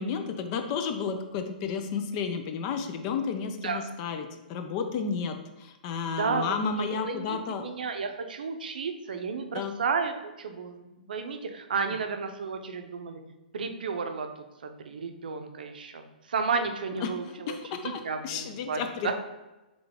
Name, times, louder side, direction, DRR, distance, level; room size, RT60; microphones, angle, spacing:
voice 1, 0.0-7.7 9.5-9.7 17.0-19.1, left 6 dB, 40° left, 7 dB, 0.5 m, -32 dB
voice 2, 6.2-6.6 7.0-13.2 13.5-14.3 14.6-17.6 17.8-19.1, right 5 dB, 70° right, 6 dB, 0.5 m, -32 dB
3.8 x 3.4 x 3.5 m, 1.0 s
hypercardioid pair, 125°, 5 cm